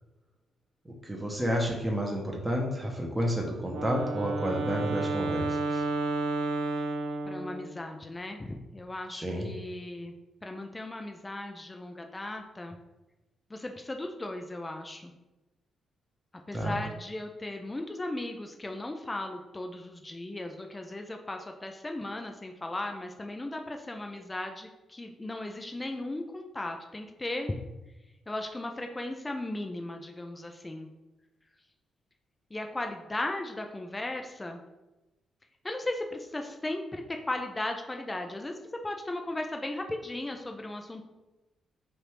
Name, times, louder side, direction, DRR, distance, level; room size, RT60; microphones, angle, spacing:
voice 1, 1.0-5.8 9.1-9.5 16.5-16.7, equal, 10° right, -1 dB, 0.8 m, -30 dB
Wind instrument woodwind instrument, 3.7-7.8, right 2 dB, 70° right, 0.5 m, -31 dB
voice 2, 7.3-10.1 10.4-12.8 13.5-15.1 16.5-27.5 28.3-30.9 32.5-34.6 35.6-41.0, left 2 dB, 20° left, 4 dB, 0.4 m, -36 dB
3.3 x 2.6 x 4.4 m, 1.0 s
cardioid pair, 75°, 0 cm